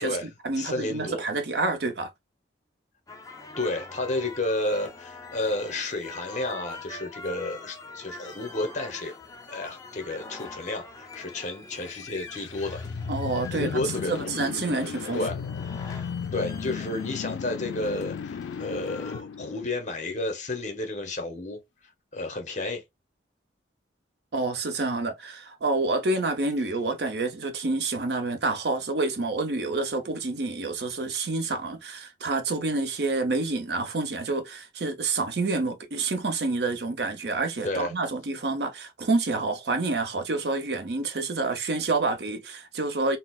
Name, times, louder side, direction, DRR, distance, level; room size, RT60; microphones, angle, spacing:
voice 1, 0.0-2.1 13.1-13.8 14.1-15.3 24.3-43.2, right 3 dB, 60° right, 0.6 m, -28 dB
voice 2, 0.6-1.2 3.6-9.1 9.5-12.8 13.5-14.3 15.1-15.4 15.6-21.6 22.1-22.8 37.6-37.9, left 2 dB, 40° left, 0.8 m, -31 dB
sound 1, 3.1-19.2, left 3 dB, 20° left, 0.5 m, -44 dB
sound 2, 12.0-20.2, left 6 dB, 80° left, 0.3 m, -35 dB
4.0 x 2.0 x 2.3 m
head